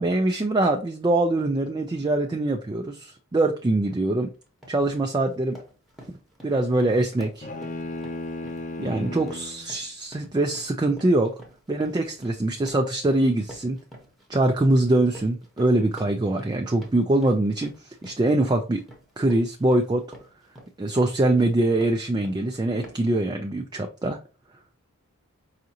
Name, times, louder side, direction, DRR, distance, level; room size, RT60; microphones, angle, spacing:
voice 1, 0.0-4.3 4.7-5.6 6.4-7.5 8.8-11.3 11.7-13.8 14.3-18.8 19.2-20.0 20.8-24.2, right 2 dB, 20° right, 4 dB, 0.3 m, -23 dB
sound 1, 3.8-4.0 4.4-4.8 5.2-22.5 22.8-23.2, equal, ahead, 0.9 m, -48 dB
sound 2, 7.4-9.7, left 2 dB, 35° left, 0.6 m, -34 dB
4.9 x 2.6 x 2.8 m, 0.36 s
head